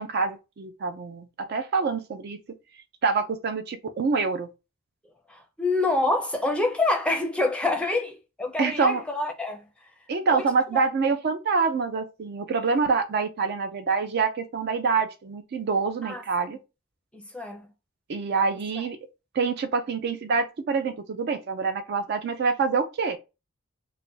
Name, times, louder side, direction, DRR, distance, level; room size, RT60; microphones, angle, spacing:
voice 1, 0.0-2.4 3.0-4.5 8.6-9.0 10.1-16.6 18.1-19.0 19.3-23.2, right 4 dB, 50° right, 0.4 m, -26 dB
voice 2, 5.3-9.6 10.3-10.4 16.0-16.2 17.1-17.7, left 2 dB, 5° left, 0.5 m, -26 dB
2.4 x 2.1 x 3.8 m
head